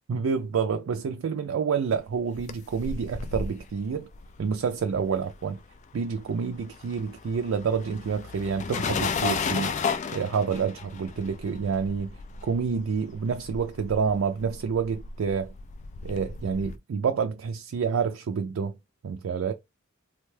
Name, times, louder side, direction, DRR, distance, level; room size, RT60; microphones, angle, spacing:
voice 1, 0.1-4.1 4.4-5.6 5.9-9.8 10.1-15.5 16.0-18.7 19.0-19.5, right 6 dB, 75° right, 0.4 m, -28 dB
sound 1, 2.1-5.8 6.0-16.8, left 5 dB, 35° left, 0.3 m, -34 dB
3.2 x 2.3 x 3.2 m
head